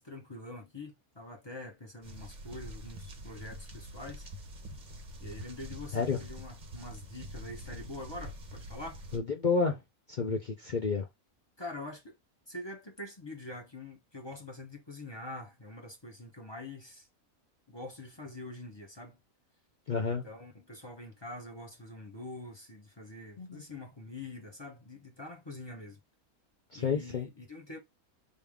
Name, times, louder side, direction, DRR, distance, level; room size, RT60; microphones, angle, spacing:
voice 1, 0.0-4.3 5.2-9.0 11.6-12.2 12.5-17.1 17.7-19.2 20.0-26.0 26.7-27.8, left 2 dB, 20° left, 0.9 m, -45 dB
sound 1, 2.0-9.2, equal, 40° right, 0.8 m, -45 dB
voice 2, 9.1-9.8 10.1-11.1 19.9-20.2 23.4-23.6 26.7-27.3, left 5 dB, 55° left, 0.5 m, -30 dB
3.5 x 2.7 x 3.5 m
omnidirectional pair, 1.5 m